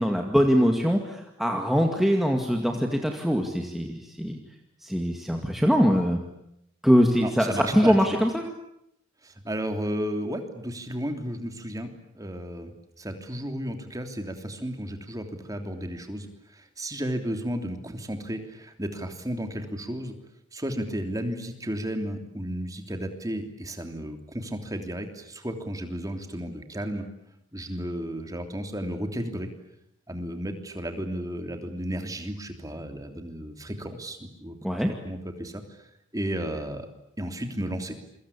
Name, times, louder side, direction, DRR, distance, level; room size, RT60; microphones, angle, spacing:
voice 1, 0.0-4.4 4.8-6.2 6.8-8.5 34.6-34.9, equal, ahead, 2 dB, 2.2 m, -23 dB
voice 2, 7.2-8.2 9.2-20.1 20.5-27.0 27.5-29.5 30.1-34.8 35.0-35.9 36.1-36.9 37.2-38.0, equal, 15° right, 5 dB, 3.1 m, -33 dB
28.5 x 24.0 x 8.6 m, 0.80 s
head